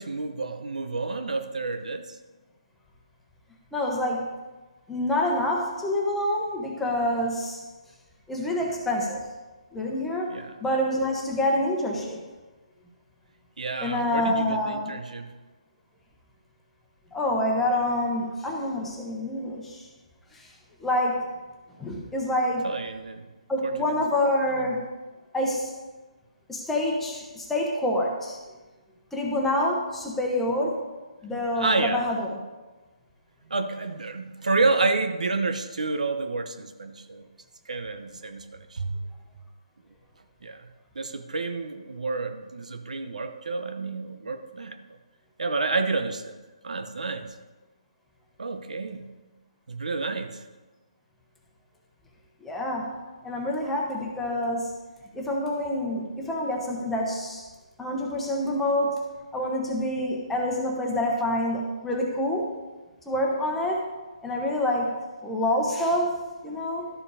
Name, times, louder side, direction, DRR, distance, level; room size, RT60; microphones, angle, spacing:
voice 1, 0.0-2.2 10.3-10.5 13.6-15.3 22.6-23.3 23.6-23.9 24.4-24.7 31.5-32.0 33.5-37.3 37.7-39.0 40.4-40.6 40.9-44.8 45.4-47.3 48.4-49.1 49.7-50.4, right 3 dB, 90° right, 8 dB, 0.9 m, -29 dB
voice 2, 3.7-4.3 4.9-7.6 8.3-9.3 9.7-10.3 10.6-12.2 13.8-14.9 17.1-19.8 20.3-20.5 20.8-21.3 21.8-22.7 23.5-24.9 25.3-25.7 26.5-28.4 29.1-30.8 31.2-32.4 52.4-53.0 53.2-54.7 55.1-57.4 57.8-59.0 59.3-62.5 63.1-63.8 64.2-64.9 65.2-66.9, left 1 dB, 5° left, -1 dB, 1.1 m, -27 dB
12.5 x 4.9 x 4.9 m, 1.2 s
hypercardioid pair, 160°, 4 cm